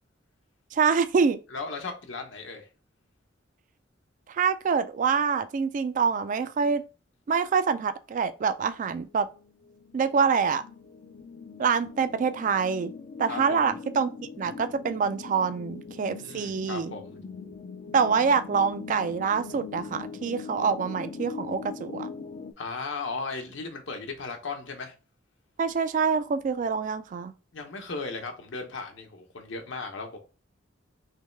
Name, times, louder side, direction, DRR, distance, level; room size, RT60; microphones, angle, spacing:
voice 1, 0.7-1.4 4.3-6.8 7.3-9.3 9.9-10.6 11.6-12.9 13.2-16.9 17.9-22.1 25.6-27.3, right 6 dB, 45° right, 0.3 m, -26 dB
voice 2, 1.5-2.7 13.3-13.6 16.2-17.2 22.6-24.9 27.5-30.2, left 4 dB, 75° left, 0.9 m, -36 dB
sound 1, 9.3-22.5, left 5 dB, 40° left, 0.4 m, -41 dB
3.3 x 3.1 x 3.2 m
head